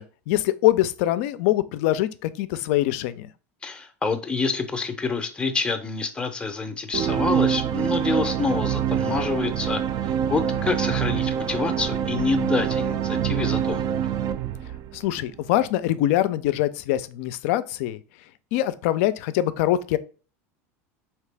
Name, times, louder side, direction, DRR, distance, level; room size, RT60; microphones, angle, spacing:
voice 1, 0.0-3.3 14.9-18.0 18.5-20.0, left 14 dB, 65° left, 0.4 m, -23 dB
voice 2, 3.6-13.8, left 4 dB, 10° left, 0.6 m, -27 dB
sound 1, 6.9-15.4, right 9 dB, 45° right, 0.3 m, -25 dB
3.7 x 2.9 x 3.3 m
hypercardioid pair, 105°, 8 cm